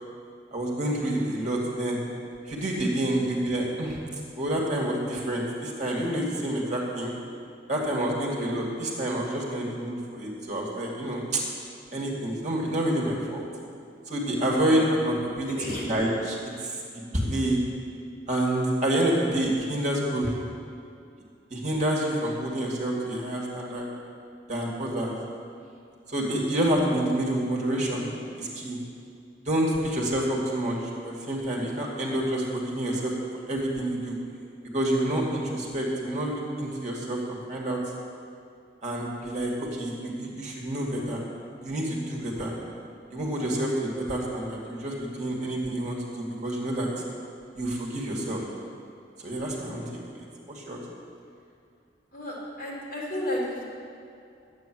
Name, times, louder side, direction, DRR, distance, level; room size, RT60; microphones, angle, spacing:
voice 1, 0.5-2.0 2.5-4.0 4.4-7.1 7.7-11.4 11.9-13.4 14.1-17.6 18.3-20.3 21.5-23.9 24.5-25.1 26.1-28.1 28.4-28.8 29.4-33.1 33.5-34.2 34.7-37.8 38.8-41.2 41.6-42.5 43.1-46.9 47.5-48.4 49.2-49.8 50.5-50.8, right 1 dB, 40° right, -3 dB, 2.2 m, -28 dB
voice 2, 3.1-3.6 15.6-15.9 49.7-49.9 52.1-53.6, left 1 dB, 50° left, -6 dB, 3.9 m, -33 dB
11.5 x 8.9 x 7.7 m, 2.5 s
head